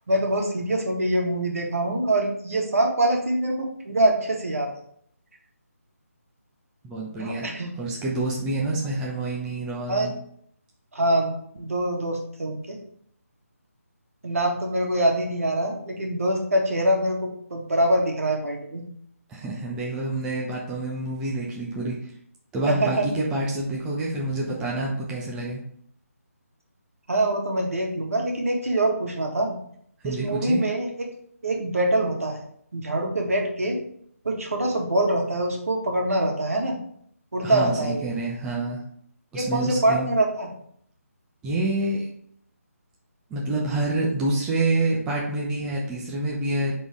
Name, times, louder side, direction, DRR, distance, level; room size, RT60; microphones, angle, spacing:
voice 1, 0.1-4.7 7.2-7.7 9.9-10.1 10.9-11.3 11.6-12.8 14.2-18.8 22.7-23.1 27.1-29.6 30.0-30.9 31.4-33.8 34.2-36.8 37.3-38.1 39.3-40.5, right 1 dB, 65° right, 1 dB, 1.8 m, -24 dB
voice 2, 6.8-10.1 19.3-22.1 22.5-25.6 30.0-30.6 37.4-38.8 39.3-40.1 41.4-42.1 43.3-46.7, right 2 dB, 10° right, -4 dB, 0.7 m, -27 dB
6.9 x 3.8 x 3.7 m, 0.66 s
figure-of-eight pair, 155°, 8 cm